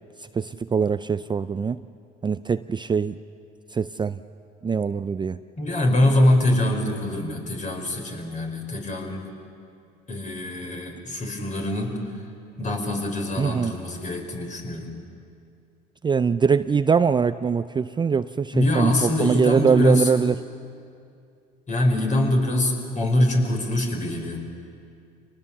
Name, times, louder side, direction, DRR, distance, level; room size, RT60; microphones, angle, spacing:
voice 1, 0.3-1.8 2.2-3.2 3.7-4.2 4.6-5.4 13.4-13.7 16.0-20.4, right 6 dB, 20° right, 13 dB, 0.5 m, -22 dB
voice 2, 5.6-9.3 10.1-12.0 12.6-14.9 18.5-20.1 21.7-24.4, left 1 dB, 35° left, 2 dB, 4.9 m, -23 dB
26.5 x 19.0 x 7.2 m, 2.4 s
hypercardioid pair, 70°, 21 cm